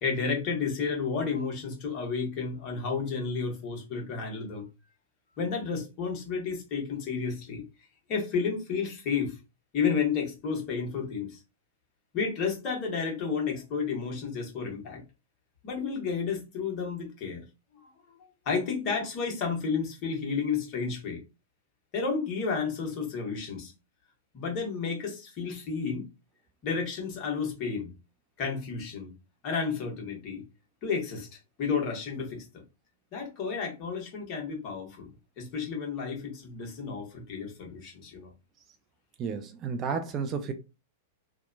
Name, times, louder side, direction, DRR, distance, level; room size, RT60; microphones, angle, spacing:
voice 1, 0.0-4.7 5.4-7.6 8.1-9.4 9.7-11.4 12.1-15.0 15.6-17.4 17.8-18.2 18.4-21.2 21.9-23.7 24.3-26.0 26.6-27.9 28.4-29.1 29.4-30.4 30.8-32.6 33.1-35.1 35.4-38.3, left 5 dB, 40° left, 1.2 m, -31 dB
voice 2, 39.2-40.5, right 5 dB, 30° right, 0.4 m, -32 dB
2.7 x 2.2 x 2.5 m
figure-of-eight pair, 95°, 0 cm